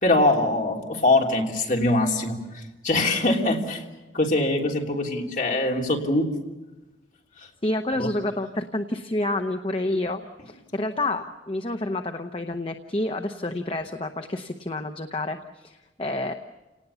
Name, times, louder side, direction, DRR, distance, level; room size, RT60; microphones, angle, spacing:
voice 1, 0.0-3.8 4.1-6.3 7.4-7.5 8.0-8.1, left 2 dB, 45° left, 1 dB, 3.3 m, -23 dB
voice 2, 7.6-16.3, left 2 dB, 30° left, 6 dB, 0.9 m, -29 dB
29.0 x 19.0 x 7.1 m, 1.1 s
head